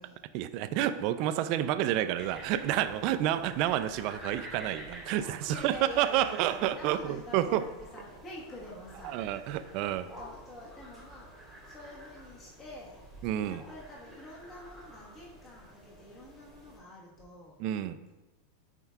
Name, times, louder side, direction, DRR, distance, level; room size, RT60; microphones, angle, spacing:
voice 1, 0.3-7.6 9.1-10.1 13.2-13.6 17.6-18.0, right 12 dB, 45° right, 12 dB, 0.3 m, -29 dB
sound 1, 2.2-16.8, right 1 dB, 5° left, 1.8 m, -50 dB
voice 2, 3.1-3.5 5.4-13.0 13.4-17.6, left 1 dB, 25° left, -5 dB, 1.3 m, -48 dB
9.4 x 4.5 x 2.3 m, 1.1 s
supercardioid pair, 155°, 0 cm